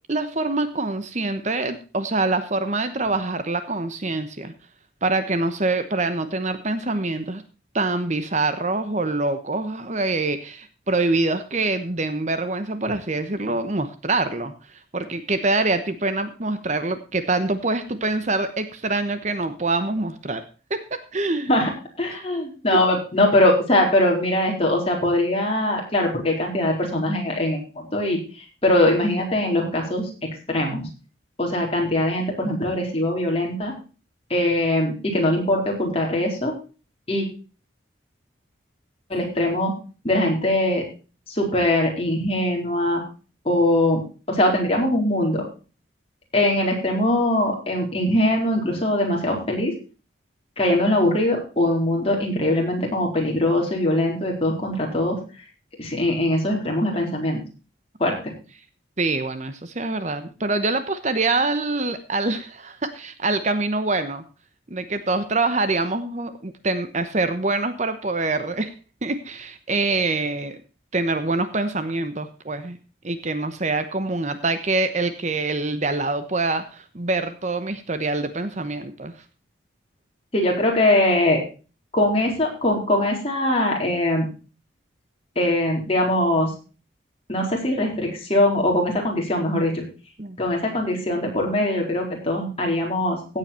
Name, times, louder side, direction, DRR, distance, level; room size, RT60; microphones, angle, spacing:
voice 1, 0.1-4.5 5.0-7.4 7.7-14.5 14.9-20.4 20.7-21.5 32.4-32.5 59.0-64.2 64.7-68.7 69.0-70.6 70.9-72.8 73.0-79.1 90.2-90.4, right 3 dB, 35° right, 10 dB, 1.0 m, -25 dB
voice 2, 22.0-30.0 30.5-30.9 31.4-33.7 34.3-36.5 37.1-37.3 39.1-39.7 40.0-40.8 41.3-43.0 43.4-44.0 44.3-45.4 46.3-49.7 50.6-55.2 55.8-57.4 58.0-58.3 80.3-81.4 81.9-84.3 85.4-86.5 87.3-89.8 90.4-93.4, left 1 dB, 30° left, 0 dB, 4.3 m, -22 dB
16.0 x 8.1 x 4.4 m, 0.35 s
head